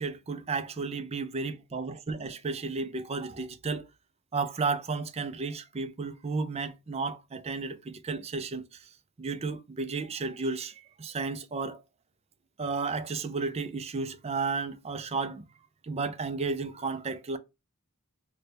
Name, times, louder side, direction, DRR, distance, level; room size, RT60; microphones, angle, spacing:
voice 1, 0.0-3.8 4.3-8.9 9.2-11.8 12.6-15.4 15.8-17.4, right 4 dB, 30° right, 0.4 m, -33 dB
3.1 x 2.2 x 4.2 m
head